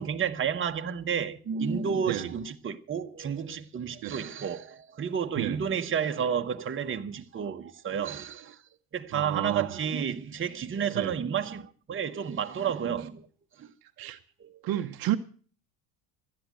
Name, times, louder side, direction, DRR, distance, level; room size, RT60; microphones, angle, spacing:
voice 1, 0.0-8.6 8.9-13.3 13.6-13.7 14.4-14.8, right 7 dB, 30° right, 1.1 m, -31 dB
voice 2, 9.1-9.7 10.9-11.1 14.0-14.2 14.6-15.2, right 13 dB, 55° right, 0.9 m, -31 dB
13.5 x 10.0 x 7.5 m
hypercardioid pair, 75°, 43 cm